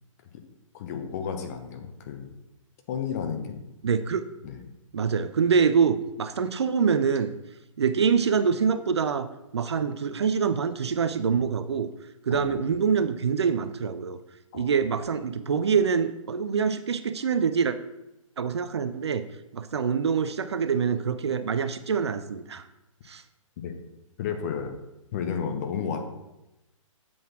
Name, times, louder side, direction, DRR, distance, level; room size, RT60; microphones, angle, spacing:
voice 1, 0.7-2.3 2.9-3.6 4.4-4.6 12.3-12.8 14.5-14.7 23.6-23.7 24.2-24.8 25.1-26.0, left 7 dB, 30° left, 5 dB, 0.9 m, -32 dB
voice 2, 3.8-4.2 4.9-7.4 7.8-9.3 9.5-11.9 12.2-14.2 14.5-17.8 18.4-19.3 19.5-22.6 23.1-23.2, right 6 dB, 55° right, 11 dB, 0.5 m, -25 dB
7.6 x 3.9 x 6.1 m, 0.93 s
figure-of-eight pair, 130°, 17 cm